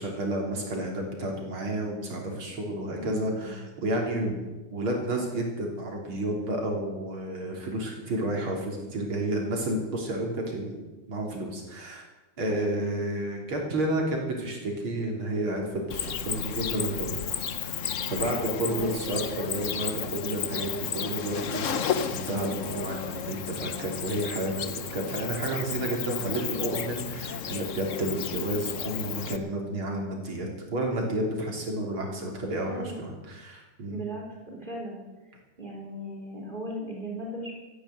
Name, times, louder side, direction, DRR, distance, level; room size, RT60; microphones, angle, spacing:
voice 1, 0.0-4.4 4.7-10.8 11.1-12.0 12.4-17.2 17.6-17.8 18.1-34.0, right 1 dB, 80° right, 0 dB, 4.3 m, -31 dB
voice 2, 2.9-3.5 12.5-13.0 18.0-18.9 31.7-32.0 32.7-33.0 33.9-35.0 35.6-37.5, right 1 dB, 20° right, -2 dB, 4.1 m, -38 dB
Cricket, 15.9-29.4, left 7 dB, 55° left, 1.0 m, -33 dB
14.0 x 11.0 x 9.3 m, 1.2 s
omnidirectional pair, 2.2 m